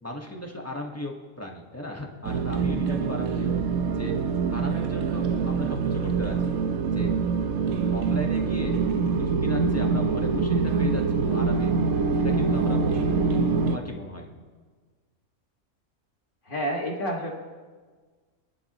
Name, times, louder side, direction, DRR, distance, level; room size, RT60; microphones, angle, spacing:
voice 1, 0.0-3.5 3.9-4.2 4.5-6.5 6.9-7.1 7.9-8.7 9.0-11.7 12.1-13.4 13.6-14.3, left 1 dB, 10° left, 1 dB, 1.3 m, -36 dB
sound 1, 2.2-13.8, right 5 dB, 65° right, 1.2 m, -25 dB
voice 2, 16.5-17.3, equal, 40° left, -1 dB, 2.1 m, -29 dB
28.5 x 11.0 x 3.0 m, 1.5 s
omnidirectional pair, 1.5 m